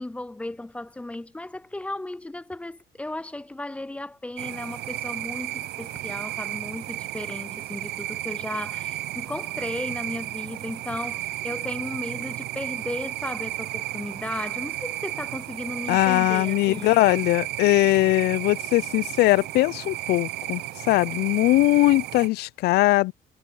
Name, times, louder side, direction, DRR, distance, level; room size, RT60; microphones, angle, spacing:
voice 1, 0.0-17.2, left 2 dB, 5° left, 0.3 m, -35 dB
sound 1, 4.4-22.3, right 15 dB, 75° right, 0.8 m, -33 dB
voice 2, 15.9-20.6 20.9-23.1, left 19 dB, 75° left, 0.4 m, -20 dB
cardioid pair, 110°, 17 cm